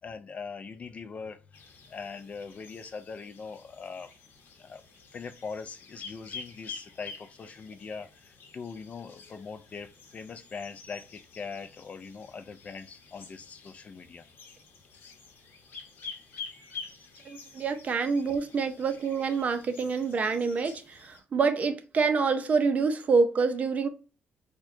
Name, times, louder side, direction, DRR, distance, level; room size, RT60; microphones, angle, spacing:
voice 1, 0.0-4.1 4.6-4.8 5.1-14.2 18.9-19.0, left 5 dB, 35° left, 0.3 m, -41 dB
sound 1, 1.5-21.2, left 5 dB, 60° left, 0.8 m, -48 dB
voice 2, 17.3-23.9, right 4 dB, 35° right, 0.5 m, -27 dB
4.5 x 2.2 x 2.5 m
cardioid pair, 150°, 4 cm